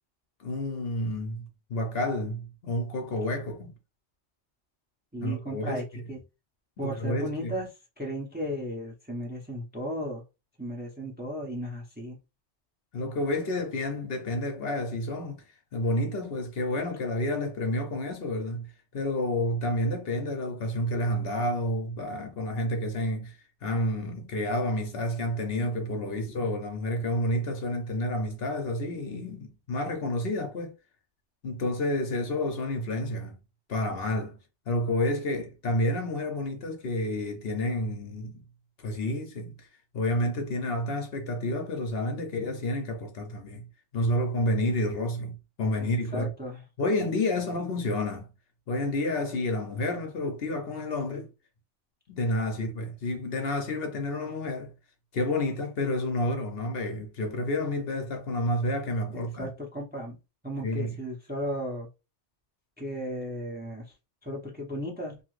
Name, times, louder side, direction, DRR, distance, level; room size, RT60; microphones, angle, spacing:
voice 1, 0.4-3.7 5.2-6.0 6.8-7.5 12.9-15.4 15.7-30.7 31.4-33.4 33.7-34.4 34.7-38.4 38.8-39.7 39.9-43.7 43.9-46.3 46.8-48.3 48.7-51.3 52.1-54.7 55.1-59.5 60.6-60.9, left 1 dB, 60° left, 0.9 m, -30 dB
voice 2, 5.1-6.2 6.8-7.7 8.0-10.2 10.6-12.2 45.8-46.6 59.1-60.2 60.4-61.9 62.8-63.8 64.2-65.2, equal, 10° right, 0.7 m, -35 dB
2.9 x 2.4 x 3.1 m
omnidirectional pair, 1.2 m